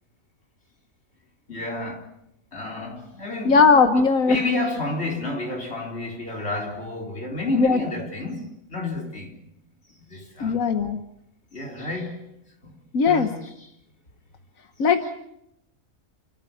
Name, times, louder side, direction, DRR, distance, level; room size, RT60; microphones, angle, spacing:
voice 1, 1.5-2.1 2.5-3.6 3.9-9.3 10.0-10.6 11.5-12.2 12.6-12.8 13.0-13.7, left 2 dB, 50° left, 4.3 m, -30 dB
voice 2, 3.4-4.4 7.5-7.8 10.4-11.0 12.9-13.3 14.8-15.0, left 5 dB, 85° left, 1.6 m, -18 dB
29.5 x 14.0 x 8.6 m
omnidirectional pair, 1.4 m